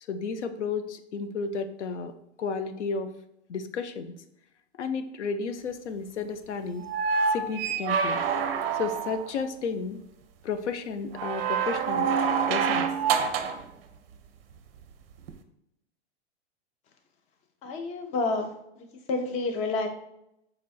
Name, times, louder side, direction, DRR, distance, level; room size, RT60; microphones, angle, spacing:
voice 1, 0.1-3.1 3.5-4.2 4.8-6.9 7.3-8.2 8.7-10.0 10.4-12.1 12.5-12.9, left 5 dB, 90° left, 9 dB, 0.5 m, -32 dB
sound 1, 6.8-9.3 11.1-13.6 15.3-15.4, right 6 dB, 60° right, 0.5 m, -26 dB
voice 2, 17.6-18.5 18.8-19.9, left 3 dB, 20° left, 5 dB, 0.4 m, -29 dB
4.2 x 2.5 x 2.3 m, 0.78 s
hypercardioid pair, 110°, 34 cm